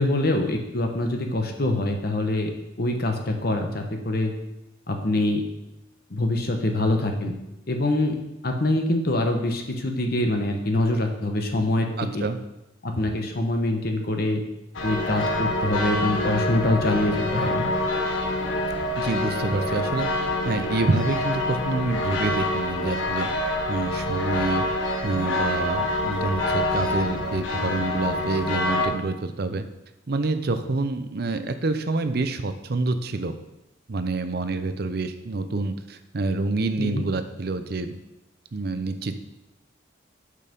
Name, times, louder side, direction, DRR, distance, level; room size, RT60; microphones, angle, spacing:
voice 1, 0.0-2.5 2.8-4.3 4.9-5.4 6.1-7.3 7.7-8.2 8.4-12.2 12.8-14.4 14.8-17.7 36.8-37.0, left 1 dB, 55° left, 4 dB, 1.0 m, -24 dB
voice 2, 12.0-12.4 19.0-20.1 20.4-23.3 23.7-24.7 25.0-29.7 30.1-33.3 33.9-37.9 38.5-39.2, right 3 dB, 55° right, 9 dB, 0.6 m, -27 dB
sound 1, 14.7-28.9, left 1 dB, 85° left, 1.1 m, -26 dB
6.5 x 5.5 x 5.3 m, 0.93 s
head